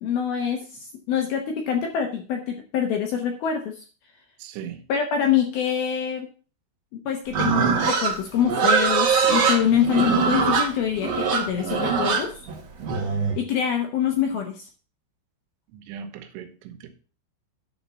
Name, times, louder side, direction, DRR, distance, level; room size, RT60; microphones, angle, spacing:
voice 1, 0.0-3.8 4.9-6.3 7.1-12.3 13.4-14.7, left 8 dB, 70° left, 3 dB, 2.4 m, -25 dB
voice 2, 4.4-4.8 11.7-11.9 15.7-16.9, right 8 dB, 85° right, 7 dB, 3.6 m, -39 dB
Livestock farm animals working animals, 7.3-13.4, right 5 dB, 60° right, 1.7 m, -22 dB
10.0 x 4.4 x 6.9 m, 0.38 s
omnidirectional pair, 5.6 m